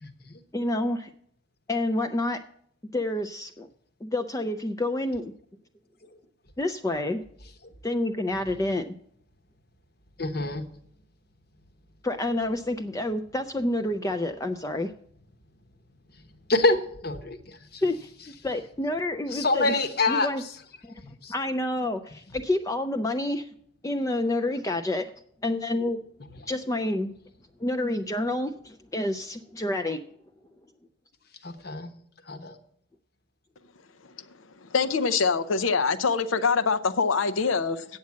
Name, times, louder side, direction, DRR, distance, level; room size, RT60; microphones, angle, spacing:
voice 1, 0.0-0.3 10.2-10.6 16.5-17.8 19.3-20.3 21.0-21.3 31.4-31.9 32.3-32.6, left 2 dB, 50° left, 1.1 m, -26 dB
voice 2, 0.5-1.1 1.7-2.4 2.9-3.7 4.0-5.3 6.6-7.2 7.8-8.9 12.0-14.9 17.8-18.1 18.4-19.7 20.1-20.4 20.8-20.9 21.3-23.5 23.8-25.1 25.4-26.0 26.5-27.1 27.6-30.0, left 1 dB, 15° left, 0.4 m, -28 dB
voice 3, 34.6-37.8, left 5 dB, 80° left, 0.7 m, -24 dB
8.7 x 7.2 x 7.3 m
head